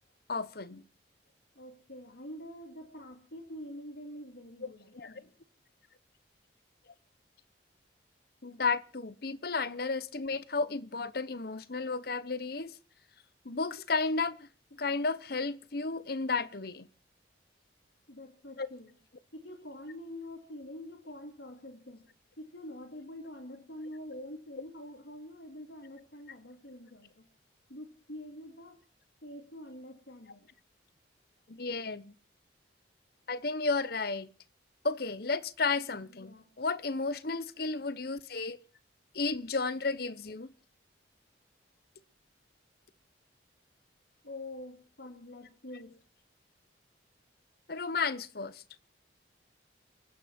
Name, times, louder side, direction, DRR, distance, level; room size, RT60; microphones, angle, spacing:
voice 1, 0.3-0.8 4.6-5.1 8.4-12.7 13.4-16.9 18.6-18.7 31.5-32.1 33.3-34.3 34.8-38.6 39.1-40.5 47.7-48.6, left 4 dB, 55° left, 1.0 m, -33 dB
voice 2, 1.5-5.3 18.1-18.9 19.3-22.0 22.4-27.3 27.7-28.8 29.2-30.5 35.8-36.5 44.2-45.9, left 1 dB, 70° left, 2.7 m, -46 dB
29.0 x 10.0 x 4.4 m
head